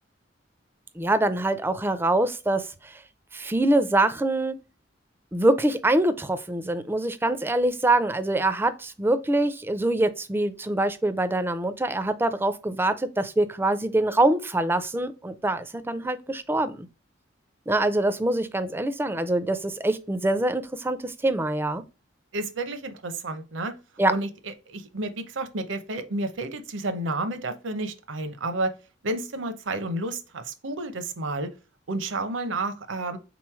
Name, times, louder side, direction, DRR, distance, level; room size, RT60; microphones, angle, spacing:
voice 1, 1.0-3.0 3.3-4.5 5.3-16.9 17.7-21.8 24.0-24.1, right 2 dB, 10° right, 0.4 m, -24 dB
voice 2, 22.3-23.7 24.1-28.7 29.0-31.5 31.9-33.2, right 2 dB, 75° right, 0.7 m, -31 dB
3.7 x 3.1 x 4.7 m
head